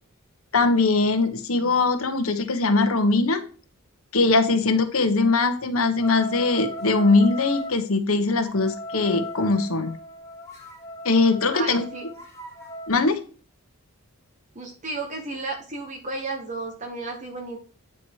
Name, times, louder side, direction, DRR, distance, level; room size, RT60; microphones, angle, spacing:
voice 1, 0.5-3.4 4.1-9.9 11.0-11.8 12.9-13.2, left 3 dB, 75° left, 7 dB, 1.2 m, -21 dB
sound 1, 6.0-7.8 8.4-12.9, equal, 15° left, 2.2 m, -37 dB
voice 2, 11.5-12.0 14.5-17.6, right 3 dB, 35° right, 2 dB, 1.2 m, -33 dB
9.6 x 4.2 x 4.7 m, 0.39 s
head